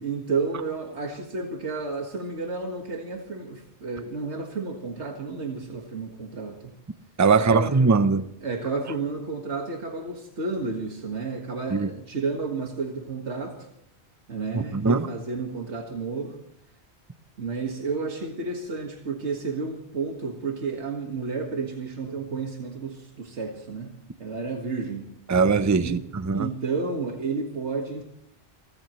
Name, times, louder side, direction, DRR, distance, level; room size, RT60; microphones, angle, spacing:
voice 1, 0.0-6.7 7.4-7.9 8.4-13.7 14.3-16.4 17.4-23.9 24.2-25.1 25.8-26.0 26.3-28.0, right 4 dB, 85° right, 2.1 m, -31 dB
voice 2, 7.2-8.3 11.7-11.9 14.5-15.1 25.3-26.5, right 4 dB, 20° right, 0.6 m, -21 dB
28.5 x 14.5 x 3.1 m
omnidirectional pair, 1.1 m